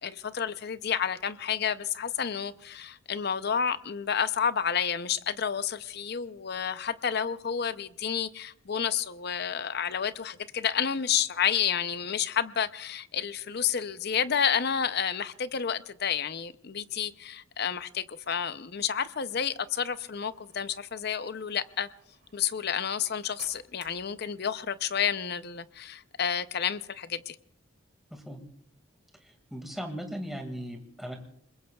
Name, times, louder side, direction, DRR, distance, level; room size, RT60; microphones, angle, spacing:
voice 1, 0.0-21.9 22.3-27.4, left 8 dB, 50° left, 0.6 m, -30 dB
sound 1, 19.6-25.9, right 8 dB, 55° right, 2.8 m, -58 dB
voice 2, 29.2-31.2, equal, ahead, 2.0 m, -38 dB
29.5 x 21.0 x 2.3 m
head